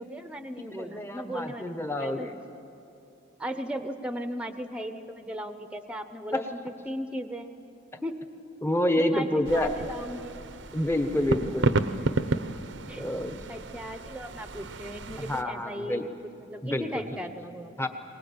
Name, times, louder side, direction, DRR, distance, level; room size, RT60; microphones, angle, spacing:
voice 1, 0.0-2.3 3.4-6.4 6.9-7.5 8.0-8.2 9.0-10.4 11.0-11.6 12.9-13.0 13.5-16.0 16.4-17.7, equal, 5° right, 8 dB, 0.9 m, -37 dB
voice 2, 0.8-2.3 6.3-6.4 8.6-9.7 10.7-11.8 13.0-13.4 15.3-16.0 16.6-17.2 17.8-17.9, left 1 dB, 10° left, 6 dB, 1.1 m, -28 dB
sound 1, 9.4-15.4, right 2 dB, 65° right, 0.8 m, -32 dB
23.5 x 19.5 x 8.6 m, 2.8 s
head